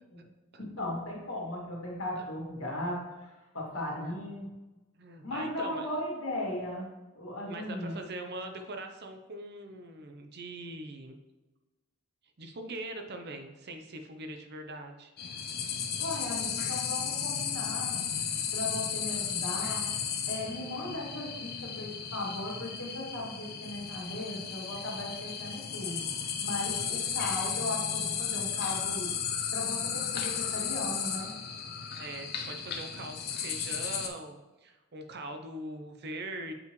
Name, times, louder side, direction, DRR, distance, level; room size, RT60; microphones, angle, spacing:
voice 1, 0.6-4.5 5.2-6.9 7.1-8.0 16.0-18.1 18.5-19.9 20.2-26.1 26.4-29.1 29.5-31.4 31.8-31.9, left 1 dB, 65° left, -3 dB, 2.1 m, -37 dB
voice 2, 4.9-5.9 7.5-11.2 12.4-15.1 32.0-36.5, right 2 dB, 45° right, 5 dB, 0.6 m, -42 dB
sound 1, 15.2-34.1, left 7 dB, 45° left, 0.6 m, -34 dB
7.2 x 5.5 x 3.1 m, 1.1 s
head